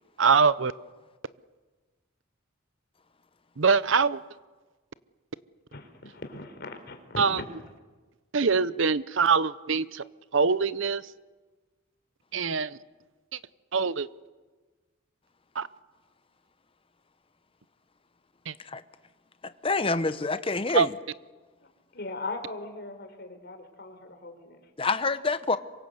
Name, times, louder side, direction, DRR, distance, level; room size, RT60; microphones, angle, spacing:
voice 1, 0.2-0.7 3.6-4.2 7.2-7.4 8.3-10.0 10.3-11.0 12.3-12.8 13.3-13.4 13.7-14.1 15.5-15.7 18.5-18.6 20.7-20.9, right 5 dB, 65° right, 0.8 m, -23 dB
voice 2, 5.7-7.2 21.9-24.6, left 2 dB, 50° left, 4.1 m, -39 dB
voice 3, 19.4-20.9 24.8-25.6, left 3 dB, 25° left, 0.8 m, -27 dB
27.0 x 24.0 x 8.0 m
head